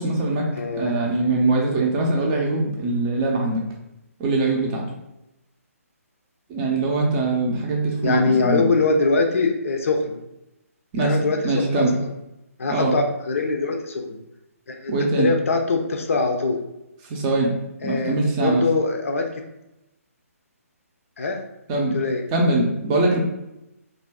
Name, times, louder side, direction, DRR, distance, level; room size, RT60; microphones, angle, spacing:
voice 1, 0.0-0.5 0.8-3.6 4.2-4.8 6.5-8.7 10.9-11.2 11.4-12.0 12.7-12.9 14.9-15.3 17.1-17.5 17.8-18.6 21.7-21.9 22.3-23.2, right 2 dB, 25° right, -1 dB, 0.5 m, -22 dB
voice 2, 0.6-1.1 8.0-10.2 11.0-12.1 12.6-14.2 14.7-14.9 15.2-16.6 17.8-19.4 21.2-21.4 21.9-22.2, left 3 dB, 60° left, 3 dB, 0.5 m, -23 dB
2.5 x 2.2 x 3.3 m, 0.92 s
figure-of-eight pair, 140°, 8 cm